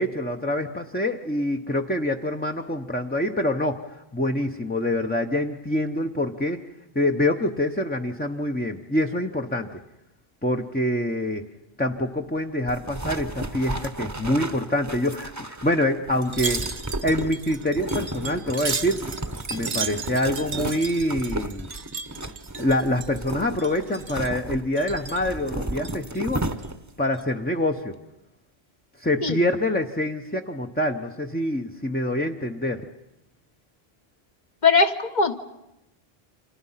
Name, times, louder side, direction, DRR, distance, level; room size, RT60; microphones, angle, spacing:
voice 1, 0.0-6.6 6.9-9.8 10.4-11.5 11.8-16.6 17.0-19.1 19.5-21.7 22.6-26.4 27.0-28.0 29.0-32.9, left 1 dB, 10° left, 2 dB, 0.8 m, -25 dB
sound 1, 12.7-27.0, right 1 dB, 15° right, 1.0 m, -34 dB
Wind chime, 16.2-23.3 23.6-24.4 24.8-25.3 25.7-26.7 27.0-27.2, right 5 dB, 55° right, 1.3 m, -34 dB
voice 2, 34.6-35.4, left 4 dB, 45° left, 8 dB, 1.5 m, -20 dB
29.5 x 26.5 x 5.8 m, 0.89 s
omnidirectional pair, 1.1 m